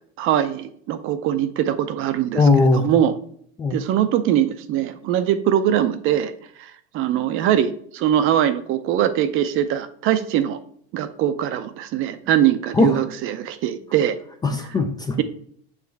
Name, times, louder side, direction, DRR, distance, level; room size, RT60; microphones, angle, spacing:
voice 1, 0.2-2.4 2.7-3.1 3.7-6.3 6.6-10.6 10.9-14.2, right 10 dB, 40° right, 11 dB, 0.5 m, -22 dB
voice 2, 2.3-2.9 3.6-3.8 12.7-13.0 14.4-15.2, left 3 dB, 15° left, 5 dB, 0.3 m, -19 dB
7.2 x 3.2 x 4.5 m, 0.63 s
supercardioid pair, 140°, 32 cm